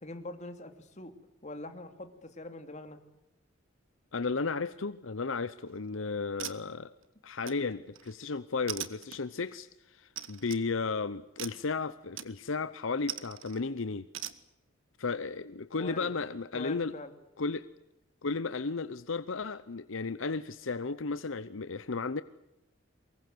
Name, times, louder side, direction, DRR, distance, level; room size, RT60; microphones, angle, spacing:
voice 1, 0.0-1.1 1.4-3.0 15.8-16.1 16.5-17.1, left 2 dB, 35° left, 7 dB, 2.8 m, -43 dB
voice 2, 4.1-6.9 7.2-14.1 15.0-16.9 17.4-17.7 18.2-22.2, left 4 dB, 75° left, 14 dB, 0.8 m, -34 dB
sound 1, 5.6-5.9 6.4-7.0 7.5-8.1 8.7-9.5 10.2-10.6 11.4-11.7 12.2-12.6 13.1-13.6 14.1-14.4, right 11 dB, 80° right, 1.6 m, -41 dB
24.0 x 22.0 x 7.9 m, 0.90 s
head